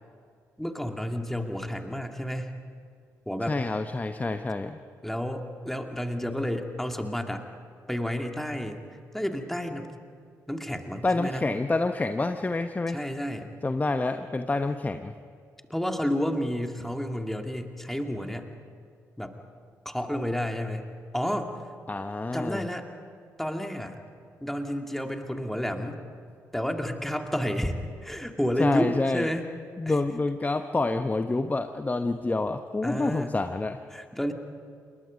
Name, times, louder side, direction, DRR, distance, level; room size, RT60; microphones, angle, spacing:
voice 1, 0.6-2.5 3.3-3.6 5.0-7.4 7.9-8.8 9.1-9.9 10.5-11.4 12.9-13.5 15.7-18.5 19.2-19.4 19.8-21.5 22.3-22.9 23.4-24.0 24.4-26.0 26.5-29.5 29.9-30.0 32.8-33.3 33.9-34.3, equal, 5° left, 4 dB, 2.4 m, -31 dB
voice 2, 3.5-4.8 11.0-13.0 13.6-15.1 21.9-22.6 28.6-29.3 29.8-33.8, left 2 dB, 20° left, 9 dB, 1.0 m, -28 dB
28.0 x 22.0 x 5.2 m, 2.2 s
figure-of-eight pair, 40°, 8 cm